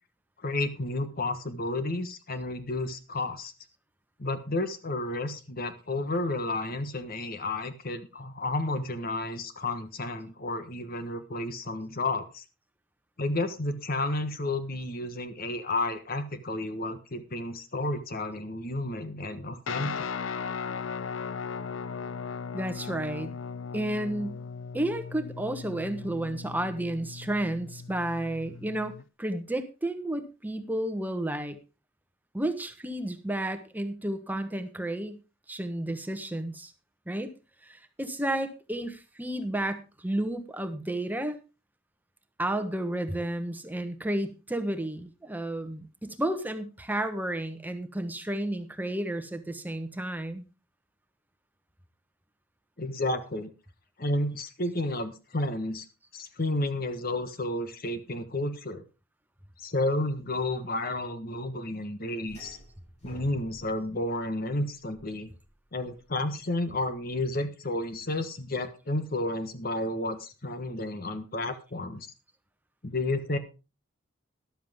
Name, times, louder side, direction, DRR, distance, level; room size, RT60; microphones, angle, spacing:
voice 1, 0.4-3.5 4.2-12.4 13.2-20.1 52.8-53.5 54.0-55.8 56.1-58.8 59.6-62.6 63.0-65.3 65.7-72.1 72.8-73.4, left 2 dB, 50° left, 10 dB, 1.3 m, -31 dB
Guitar, 19.7-29.0, left 5 dB, 85° left, 0.6 m, -37 dB
voice 2, 22.5-23.3 23.7-24.4 24.7-31.6 32.3-35.2 35.5-36.7 37.1-37.3 37.6-41.4 42.4-50.4, right 1 dB, 10° right, 8 dB, 1.2 m, -32 dB
sound 1, 62.3-67.2, left 1 dB, 35° left, 7.7 m, -51 dB
13.5 x 11.5 x 3.6 m, 0.30 s
head